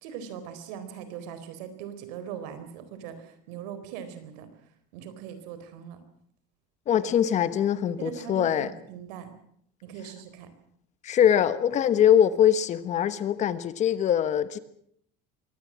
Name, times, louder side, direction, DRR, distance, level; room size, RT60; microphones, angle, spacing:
voice 1, 0.0-4.5 4.9-6.0 8.0-9.3 9.8-10.5, right 8 dB, 90° right, 4.2 m, -40 dB
voice 2, 6.9-8.7 11.0-14.6, left 9 dB, 35° left, 1.3 m, -22 dB
23.0 x 17.5 x 7.5 m
cardioid pair, 155°, 21 cm